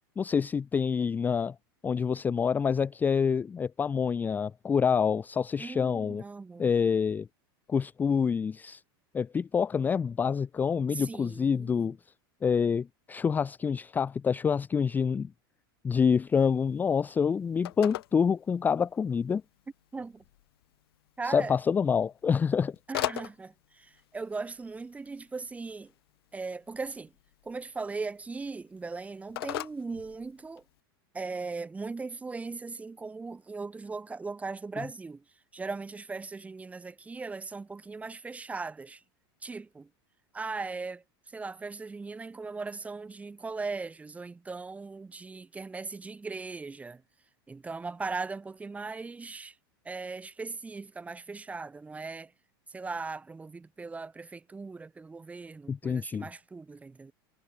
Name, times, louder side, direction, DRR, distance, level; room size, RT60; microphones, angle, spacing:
voice 1, 0.2-1.5 1.8-6.2 6.6-7.3 7.7-8.8 9.1-12.0 12.4-15.3 15.8-19.4 21.2-22.8 55.7-56.3, left 6 dB, 15° left, 0.4 m, -27 dB
voice 2, 5.6-6.7 10.9-11.9 19.9-20.2 21.2-21.5 22.9-25.9 26.3-27.1 27.4-30.6 31.1-35.2 35.5-39.0 39.4-39.9 40.3-47.0 47.5-49.5 49.8-52.3 52.7-57.1, right 4 dB, 10° right, 1.2 m, -38 dB
Telephone, 16.3-30.8, left 15 dB, 80° left, 1.1 m, -43 dB
supercardioid pair, 130°, 13 cm